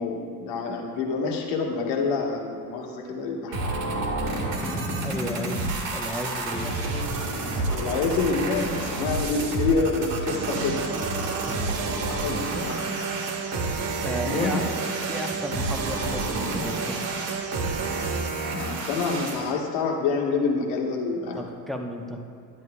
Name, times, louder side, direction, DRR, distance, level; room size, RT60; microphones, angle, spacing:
voice 1, 0.0-3.6 7.5-10.9 12.1-12.9 14.2-14.6 18.6-21.4, left 4 dB, 60° left, 1 dB, 1.4 m, -27 dB
sound 1, 3.5-19.5, right 2 dB, 65° right, 1.7 m, -30 dB
voice 2, 4.9-6.7 11.5-11.8 14.0-14.6 15.1-17.0 21.3-22.2, equal, ahead, 2 dB, 0.8 m, -34 dB
sound 2, 10.3-18.3, right 6 dB, 30° right, 0.6 m, -33 dB
10.5 x 10.5 x 2.2 m, 2.4 s
hypercardioid pair, 65°, 49 cm